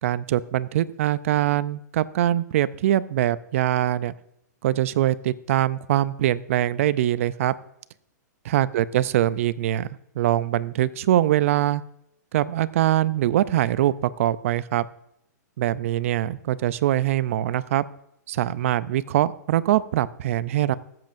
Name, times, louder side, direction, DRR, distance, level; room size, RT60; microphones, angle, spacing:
voice 1, 0.0-4.1 4.6-7.6 8.5-9.9 10.2-11.8 12.3-14.9 15.6-17.9 18.3-20.8, right 13 dB, 45° right, 17 dB, 0.4 m, -23 dB
20.5 x 7.5 x 2.6 m, 0.78 s
hypercardioid pair, 160°, 10 cm